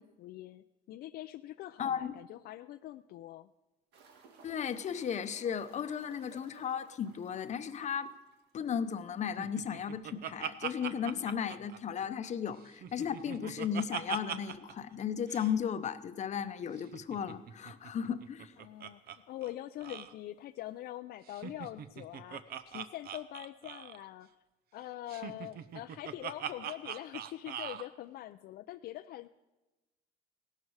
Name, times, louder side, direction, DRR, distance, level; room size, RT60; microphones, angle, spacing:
voice 1, 0.0-3.5 18.6-24.3 24.7-29.3, left 14 dB, 65° left, 9 dB, 0.4 m, -44 dB
voice 2, 1.8-2.1 4.4-8.1 8.5-18.5, left 8 dB, 45° left, 12 dB, 0.8 m, -35 dB
sound 1, 3.9-9.3 9.6-9.7 10.0-10.1 12.9-13.0 14.7-14.8 15.6-15.7 15.9-16.0 16.9-17.0 17.1-17.8 18.7-18.8, right 5 dB, 85° right, 1.9 m, -60 dB
Laughter, 9.4-12.3 12.6-14.7 15.0-15.1 15.3-15.5 16.8-19.2 19.4-19.5 19.8-20.1 21.3-24.1 25.1-27.9, right 9 dB, 65° right, 0.8 m, -41 dB
17.0 x 12.0 x 4.8 m, 1.1 s
cardioid pair, 110°, 17 cm